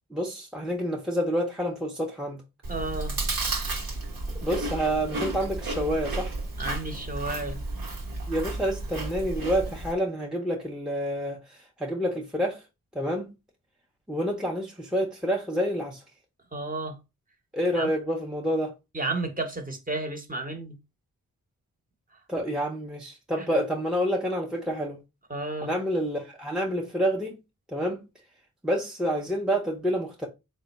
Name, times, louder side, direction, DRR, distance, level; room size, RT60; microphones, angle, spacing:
voice 1, 0.1-2.4 4.4-6.3 8.3-12.6 12.9-13.3 14.1-16.0 17.5-18.7 22.3-25.0 25.6-27.4 27.7-28.0 28.6-30.3, equal, ahead, 0.6 m, -28 dB
Chewing mastication, 2.6-9.9, right 2 dB, 70° right, 1.1 m, -32 dB
voice 2, 2.7-3.2 6.6-7.6 16.5-17.0 17.7-17.9 18.9-20.8 23.4-23.5 25.3-25.7, right 2 dB, 25° right, 0.9 m, -32 dB
3.5 x 2.2 x 4.0 m
cardioid pair, 65°, 36 cm